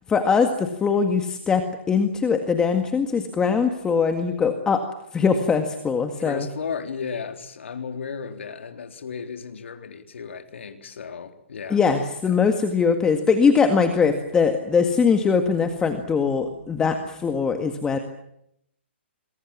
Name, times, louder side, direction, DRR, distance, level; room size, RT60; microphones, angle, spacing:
voice 1, 0.1-4.8 5.1-6.5 11.7-18.0, left 5 dB, 10° left, 1.9 m, -21 dB
voice 2, 6.2-11.8 12.3-12.4, left 6 dB, 75° left, 3.9 m, -34 dB
27.5 x 23.0 x 7.4 m
hypercardioid pair, 155°, 7 cm